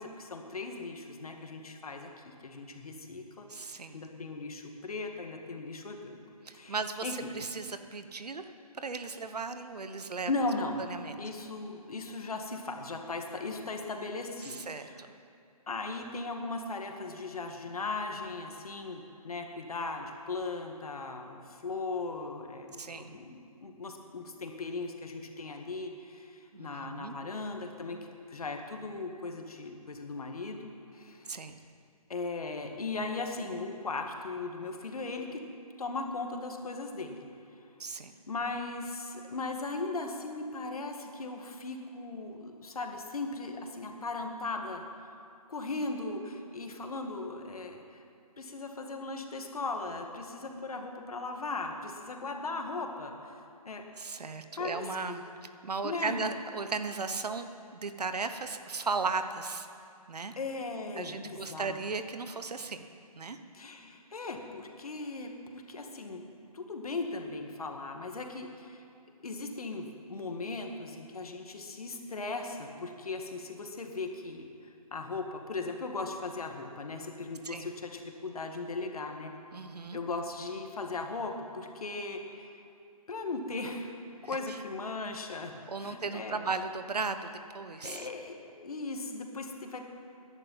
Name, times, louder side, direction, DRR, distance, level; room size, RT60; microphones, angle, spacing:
voice 1, 0.0-6.2 6.5-6.8 7.0-7.1 10.3-10.8 11.2-15.0 15.7-28.0 28.3-30.6 30.9-31.3 32.1-35.4 35.8-37.2 38.3-45.2 45.5-48.0 48.4-53.3 53.7-53.8 54.6-55.2 55.8-56.2 60.4-61.8 63.5-66.3 66.5-68.8 69.2-74.5 74.9-79.3 79.9-82.6 83.1-83.9 84.3-85.5 85.8-86.4 87.8-89.8, left 3 dB, 65° left, 3 dB, 2.0 m, -38 dB
voice 2, 3.5-4.0 6.4-10.3 10.8-11.2 14.4-15.1 22.7-23.2 26.5-27.1 31.3-31.6 37.8-38.1 54.0-55.2 55.6-57.5 57.7-59.7 60.1-60.3 61.0-62.9 63.2-63.4 77.4-77.7 79.5-80.0 84.2-84.6 85.7-88.1, right 4 dB, 85° right, 9 dB, 1.2 m, -36 dB
19.0 x 10.5 x 5.7 m, 2.5 s
hypercardioid pair, 165°, 20 cm